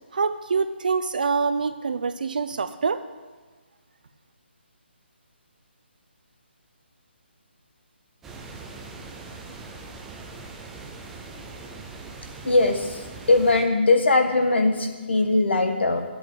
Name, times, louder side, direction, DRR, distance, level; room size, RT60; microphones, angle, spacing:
voice 1, 0.1-3.0, right 5 dB, 45° right, 10 dB, 0.7 m, -25 dB
sound 1, 8.2-13.6, right 3 dB, 5° right, 0.4 m, -41 dB
voice 2, 12.4-16.0, left 2 dB, 70° left, 6 dB, 1.8 m, -20 dB
9.1 x 8.1 x 9.1 m, 1.3 s
hypercardioid pair, 175°, 6 cm